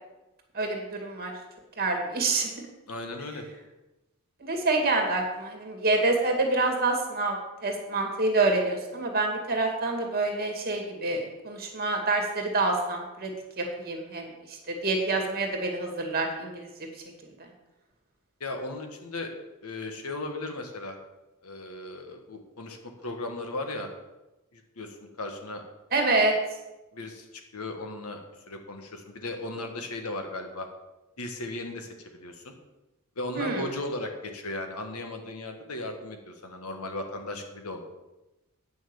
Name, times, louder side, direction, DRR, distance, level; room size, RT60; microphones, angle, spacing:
voice 1, 0.5-1.3 1.8-2.7 4.4-13.3 13.6-16.7 25.9-26.4 33.4-33.7, right 2 dB, 45° right, 2 dB, 2.3 m, -27 dB
voice 2, 2.9-3.4 18.4-19.3 19.6-21.0 21.4-23.9 24.5-25.6 26.9-28.2 28.5-30.7 31.2-32.6 33.2-37.8, left 2 dB, 85° left, 5 dB, 1.5 m, -36 dB
9.3 x 6.5 x 7.1 m, 1.0 s
head